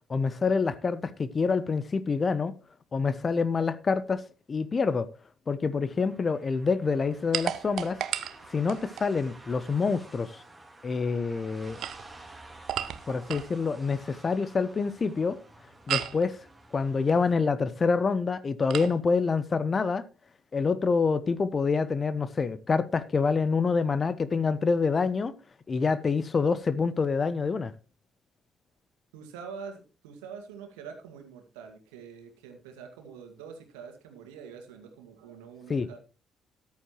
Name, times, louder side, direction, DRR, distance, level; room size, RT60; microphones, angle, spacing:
voice 1, 0.1-2.6 2.9-4.2 4.5-5.1 5.5-8.0 8.5-10.4 10.8-11.8 13.1-15.4 15.9-16.4 16.7-20.0 20.5-25.3 25.7-27.7 35.7-35.9, left 4 dB, 35° left, 0.9 m, -26 dB
sound 1, 5.9-17.3, right 2 dB, 15° right, 3.4 m, -51 dB
sound 2, 7.3-9.1 11.6-13.5 15.9-16.3 18.7-19.0, right 10 dB, 60° right, 0.7 m, -34 dB
voice 2, 29.1-36.0, right 6 dB, 75° right, 1.9 m, -45 dB
13.5 x 10.5 x 3.0 m
figure-of-eight pair, 45°, 0 cm